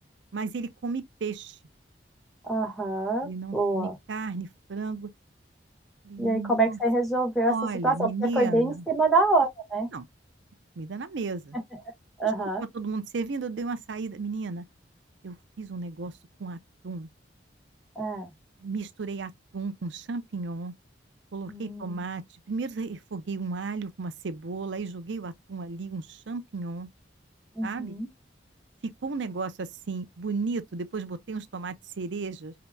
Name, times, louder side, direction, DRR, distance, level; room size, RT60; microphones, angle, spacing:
voice 1, 0.3-1.6 3.2-5.1 6.0-6.8 7.5-8.8 9.9-10.1 10.8-11.6 12.2-14.6 15.2-17.1 18.6-20.7 21.3-26.9 27.6-28.0 29.0-32.5, right 4 dB, 75° right, 0.6 m, -34 dB
voice 2, 2.4-4.0 6.2-7.5 7.8-9.9 12.2-12.6 18.0-18.3 21.5-22.0 27.6-28.1, right 2 dB, ahead, 1.6 m, -26 dB
5.2 x 2.8 x 2.2 m
head